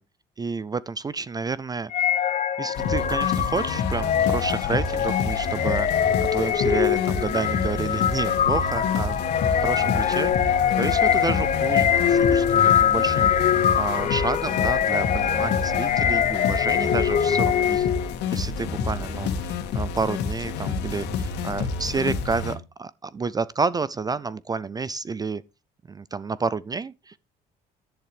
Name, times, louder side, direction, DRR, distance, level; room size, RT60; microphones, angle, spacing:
voice 1, 0.4-2.1 2.6-9.2 9.5-17.9 18.3-25.4 25.9-27.2, right 4 dB, 25° right, 0.4 m, -30 dB
sound 1, 1.9-18.1, left 9 dB, 45° left, 1.0 m, -23 dB
sound 2, 2.7-22.6, left 5 dB, 85° left, 2.1 m, -29 dB
11.0 x 10.0 x 3.3 m
cardioid pair, 110°, 17 cm